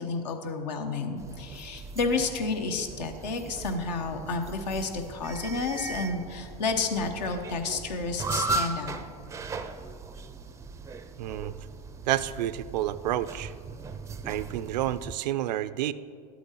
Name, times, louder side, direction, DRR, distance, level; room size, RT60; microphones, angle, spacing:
voice 1, 0.0-9.0, left 3 dB, 80° left, 5 dB, 1.0 m, -31 dB
sound 1, 1.2-15.2, right 3 dB, 15° right, 0.4 m, -38 dB
voice 2, 11.2-11.5 12.1-13.5 14.2-15.9, right 13 dB, 80° right, 15 dB, 0.4 m, -29 dB
12.0 x 8.5 x 2.9 m, 2.2 s
hypercardioid pair, 105°, 21 cm